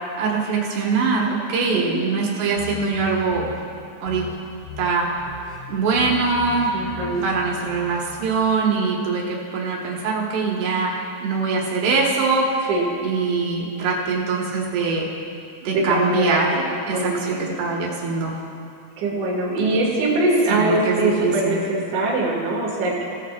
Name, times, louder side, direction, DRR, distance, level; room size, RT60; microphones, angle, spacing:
voice 1, 0.2-3.5 4.0-4.2 4.8-5.1 5.7-6.7 7.2-10.9 11.2-12.7 13.0-15.1 15.6-18.3 20.5-21.6, right 4 dB, 75° right, -2 dB, 3.5 m, -22 dB
sound 1, 2.6-3.6 4.1-4.4 4.6-4.9 5.2-8.5, left 7 dB, 70° left, 3.1 m, -38 dB
voice 2, 6.7-7.2 12.7-12.9 15.7-16.6 16.9-17.6 19.0-23.1, right 2 dB, 50° right, -4 dB, 3.1 m, -22 dB
18.0 x 14.0 x 2.5 m, 2.5 s
omnidirectional pair, 4.9 m